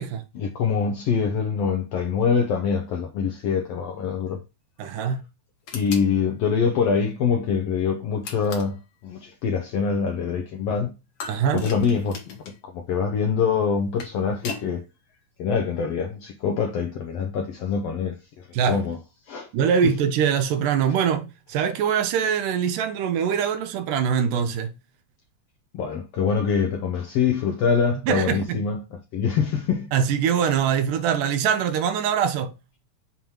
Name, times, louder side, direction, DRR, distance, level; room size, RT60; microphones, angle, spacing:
voice 1, 0.3-4.4 5.7-8.8 9.0-10.9 11.5-12.4 12.7-14.8 15.4-19.0 19.3-19.5 19.8-19.9 25.7-29.9, left 6 dB, 75° left, 1.5 m, -24 dB
voice 2, 4.8-5.2 11.3-11.7 18.5-18.8 19.5-24.7 27.9-28.6 29.9-32.5, right 7 dB, 80° right, 2.3 m, -23 dB
sound 1, 5.7-6.1 8.2-8.8 11.2-12.6 13.7-14.7, left 5 dB, 55° left, 2.1 m, -37 dB
7.1 x 3.1 x 5.5 m
omnidirectional pair, 3.7 m